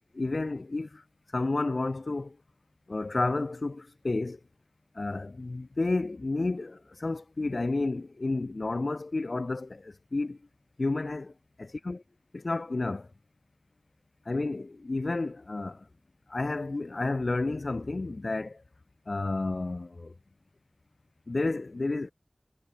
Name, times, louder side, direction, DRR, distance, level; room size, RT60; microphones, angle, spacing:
voice 1, 0.1-1.0 1.3-2.4 2.9-4.4 4.9-10.4 10.8-11.3 11.6-12.0 12.3-13.1 14.3-15.9 16.3-18.6 19.1-20.1 21.3-22.1, left 2 dB, 80° left, 6.2 m, -31 dB
wide cardioid pair, 40°, 0 cm